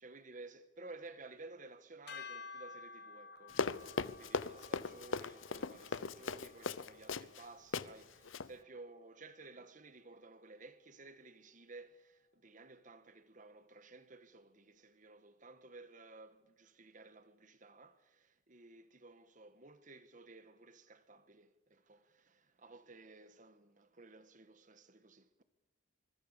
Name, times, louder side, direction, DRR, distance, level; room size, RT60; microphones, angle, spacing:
voice 1, 0.0-25.4, right 3 dB, 40° right, 1.5 m, -55 dB
sound 1, 2.1-8.4, left 4 dB, 55° left, 2.5 m, -54 dB
Run, 3.5-7.4 7.7-7.9 8.2-8.5, left 4 dB, 80° left, 0.8 m, -38 dB
25.0 x 22.0 x 6.9 m
head